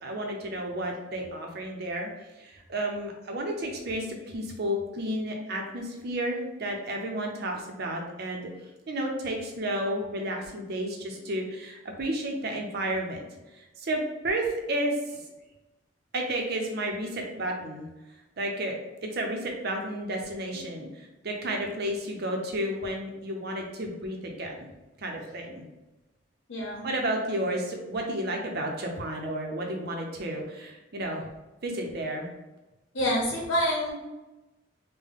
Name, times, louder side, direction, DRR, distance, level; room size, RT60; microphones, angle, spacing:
voice 1, 0.0-2.1 2.4-8.5 8.9-13.3 13.5-15.2 16.1-17.9 18.4-18.7 19.0-24.7 25.0-25.6 26.8-31.3 31.6-32.3, right 1 dB, 55° right, 1 dB, 0.7 m, -32 dB
voice 2, 26.5-26.9 32.9-33.9, equal, 75° left, -2 dB, 0.8 m, -27 dB
3.6 x 2.2 x 3.6 m, 1.0 s
head